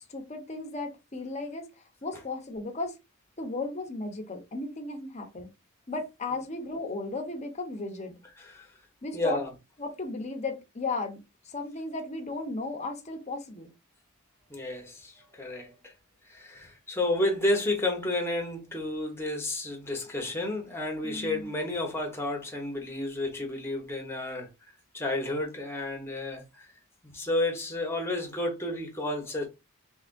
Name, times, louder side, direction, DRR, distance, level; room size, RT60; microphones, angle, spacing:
voice 1, 0.0-1.7 2.0-3.0 3.4-5.5 5.9-8.1 9.0-9.4 9.8-11.2 11.4-13.7 21.0-21.5, left 3 dB, 30° left, 0.8 m, -35 dB
voice 2, 8.4-8.7 9.1-9.5 14.5-15.9 16.3-24.5 24.9-26.7 27.0-29.5, left 1 dB, 10° left, 1.1 m, -31 dB
3.4 x 3.4 x 2.5 m
head